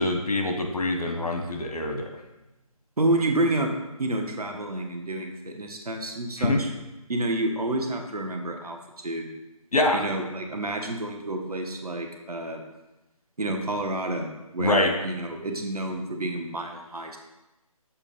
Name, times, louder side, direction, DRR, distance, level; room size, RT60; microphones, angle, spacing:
voice 1, 0.0-2.1 6.4-6.6 9.7-10.0 14.6-14.9, left 2 dB, 85° left, 3 dB, 1.2 m, -24 dB
voice 2, 3.0-3.7 4.0-6.7 7.1-8.8 9.0-9.3 9.9-12.6 13.4-17.2, right 2 dB, 85° right, 3 dB, 1.1 m, -29 dB
7.0 x 2.9 x 5.3 m, 0.98 s
figure-of-eight pair, 160°, 19 cm